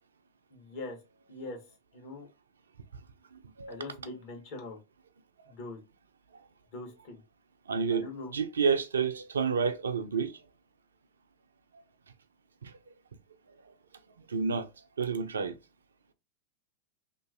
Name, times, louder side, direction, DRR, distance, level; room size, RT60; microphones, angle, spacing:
voice 1, 0.5-1.0 1.3-1.6 1.9-2.3 3.7-4.8 5.5-5.8 6.7-7.2 7.9-8.3, left 2 dB, 50° left, 1.1 m, -42 dB
voice 2, 3.3-3.8 5.4-5.5 7.7-8.1 8.3-10.4 12.6-12.7 14.3-14.7 15.0-15.6, right 5 dB, 70° right, 0.4 m, -29 dB
2.9 x 2.5 x 2.4 m
figure-of-eight pair, 90°, 0 cm